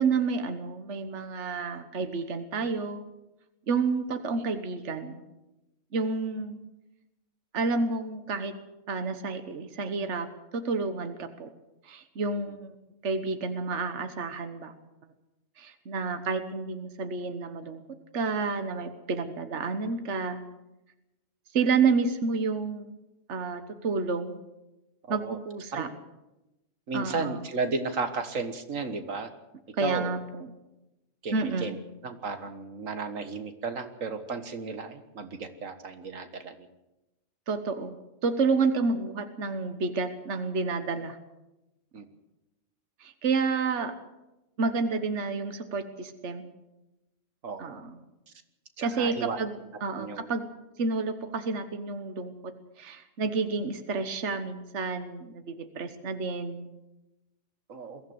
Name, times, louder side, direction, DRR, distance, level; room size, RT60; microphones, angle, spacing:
voice 1, 0.0-3.0 3.7-5.2 5.9-6.6 7.5-8.6 8.9-10.3 10.5-11.5 11.8-12.8 13.0-14.7 15.6-17.8 18.1-20.4 21.5-22.9 23.3-24.4 25.1-25.9 26.9-27.4 29.7-30.5 31.3-31.8 37.5-38.0 38.2-41.2 43.0-43.9 44.6-46.5 47.6-48.0 48.8-49.5 49.8-50.4 50.8-56.7, right 4 dB, 65° right, 8 dB, 1.6 m, -30 dB
voice 2, 25.1-25.4 25.7-25.9 26.9-29.3 29.8-30.1 31.2-31.8 32.0-36.7 41.9-42.0 47.4-47.8 48.8-49.4 50.0-50.3 57.7-58.0, right 4 dB, 85° right, 8 dB, 1.9 m, -34 dB
22.0 x 15.0 x 8.0 m, 0.97 s
omnidirectional pair, 1.3 m